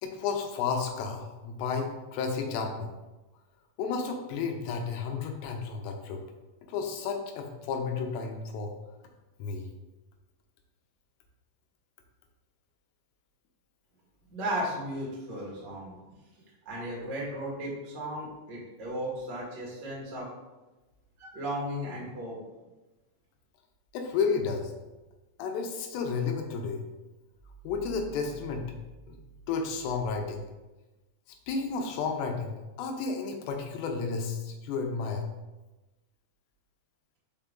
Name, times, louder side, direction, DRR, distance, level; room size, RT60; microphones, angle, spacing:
voice 1, 0.0-2.9 3.8-6.2 6.6-8.7 9.4-9.7 23.9-24.7 25.4-26.8 27.6-28.7 29.1-29.2 29.5-30.4 31.5-35.3, left 5 dB, 90° left, 3 dB, 3.0 m, -32 dB
voice 2, 14.3-15.9 16.6-20.3 21.2-22.4, equal, 45° right, -5 dB, 1.6 m, -35 dB
5.6 x 5.1 x 3.7 m, 1.1 s
omnidirectional pair, 4.8 m